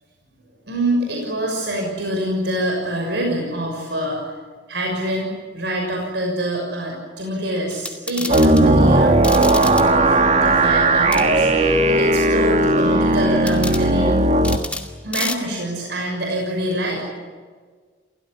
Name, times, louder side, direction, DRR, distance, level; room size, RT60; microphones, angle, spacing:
voice 1, 0.7-4.2 4.7-9.5 10.1-14.2 15.0-17.0, right 1 dB, 70° right, 0 dB, 6.4 m, -25 dB
sound 1, 7.7-8.6 9.2-9.9 11.1-11.3 13.5-13.9 14.4-14.9 15.1-15.3, left 2 dB, 5° left, 2.2 m, -29 dB
sound 2, 8.3-14.6, right 2 dB, 40° right, 1.8 m, -16 dB
29.0 x 17.0 x 9.8 m, 1.5 s
head